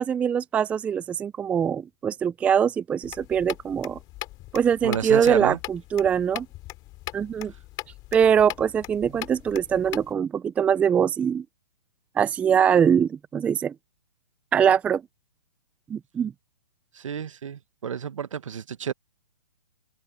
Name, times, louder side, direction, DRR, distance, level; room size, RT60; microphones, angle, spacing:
voice 1, 0.0-4.0 4.5-6.5 7.1-7.5 8.1-11.4 12.2-13.7 14.5-15.0 15.9-16.3, right 8 dB, 10° right, 0.5 m, -22 dB
sound 1, 3.0-10.1, left 19 dB, 25° left, 2.9 m, -40 dB
voice 2, 4.8-5.6 16.9-18.9, right 8 dB, 70° right, 1.4 m, -30 dB
open air
hypercardioid pair, 150°, 17 cm